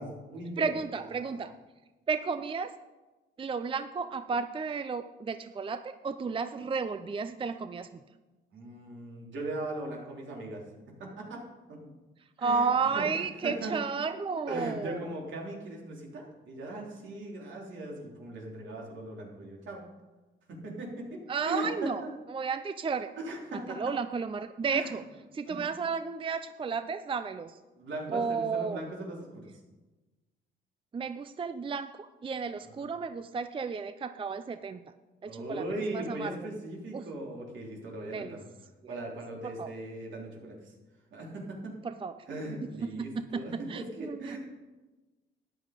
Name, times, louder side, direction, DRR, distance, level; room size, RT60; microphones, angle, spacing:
voice 1, 0.0-0.7 1.1-1.4 8.5-10.7 11.0-11.4 11.7-11.8 12.4-13.8 14.5-19.8 20.5-22.1 23.2-23.8 24.7-25.0 25.4-25.6 27.8-29.5 32.6-32.9 35.3-38.4 38.9-40.7 41.1-41.7 42.3-44.4, right 1 dB, 70° right, -1 dB, 3.6 m, -39 dB
voice 2, 0.6-1.5 2.1-2.7 3.4-7.9 12.4-15.1 21.3-22.0 22.3-23.1 23.7-25.0 25.3-27.6 28.1-28.8 30.9-34.8 35.2-35.6 35.9-36.4 36.9-37.0 38.1-38.4 38.8-39.0 39.4-39.7 41.8-42.2 42.8-44.4, right 5 dB, 25° right, 11 dB, 0.5 m, -33 dB
13.0 x 9.7 x 5.1 m, 1.2 s
cardioid pair, 90°, 20 cm